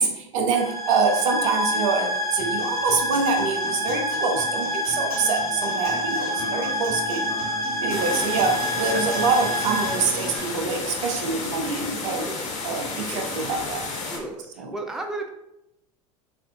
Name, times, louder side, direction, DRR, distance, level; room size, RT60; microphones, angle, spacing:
voice 1, 0.0-7.3 7.8-12.3 12.6-13.9 14.6-14.7, right 4 dB, 60° right, 4 dB, 0.7 m, -25 dB
sound 1, 0.5-11.1, equal, 20° left, 1.0 m, -27 dB
Acoustic guitar, 2.4-10.4, left 1 dB, 85° left, 1.4 m, -38 dB
voice 2, 6.3-6.8 7.3-8.1 8.9-9.1 12.2-12.5 13.1-13.4 14.1-15.3, right 2 dB, 5° right, 4 dB, 0.4 m, -36 dB
sound 2, 7.9-14.2, left 3 dB, 40° left, 1.3 m, -32 dB
6.0 x 2.5 x 2.3 m, 0.88 s
figure-of-eight pair, 75°, 18 cm